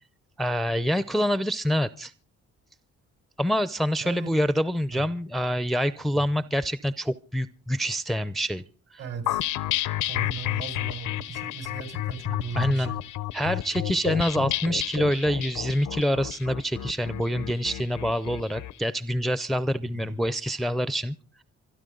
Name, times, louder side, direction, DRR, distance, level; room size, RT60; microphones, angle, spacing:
voice 1, 0.4-2.1 3.4-8.6 12.5-12.9 13.3-21.2, equal, ahead, 14 dB, 0.6 m, -26 dB
voice 2, 4.0-4.4 4.9-5.1 6.1-6.4 9.0-9.5 10.0-13.0 19.7-20.2, right 5 dB, 60° right, 6 dB, 5.2 m, -38 dB
sound 1, 9.3-18.7, left 14 dB, 85° left, 0.8 m, -31 dB
26.0 x 10.5 x 3.9 m, 0.38 s
cardioid pair, 90°, 30 cm